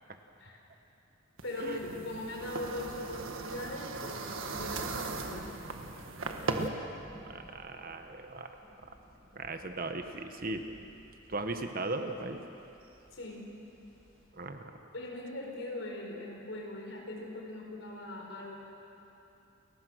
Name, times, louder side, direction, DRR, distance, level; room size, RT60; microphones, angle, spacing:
voice 1, 1.4-5.6 13.1-13.5 14.9-18.6, left 1 dB, 75° left, 0 dB, 4.5 m, -40 dB
sound 1, 1.4-6.7, right 3 dB, 80° right, 1.5 m, -38 dB
sound 2, 1.8-14.2, equal, 10° left, 6.9 m, -54 dB
voice 2, 7.2-8.6 9.3-10.6 11.3-12.4 14.3-14.8, right 2 dB, 45° right, 6 dB, 1.2 m, -37 dB
29.5 x 15.5 x 6.3 m, 2.9 s
head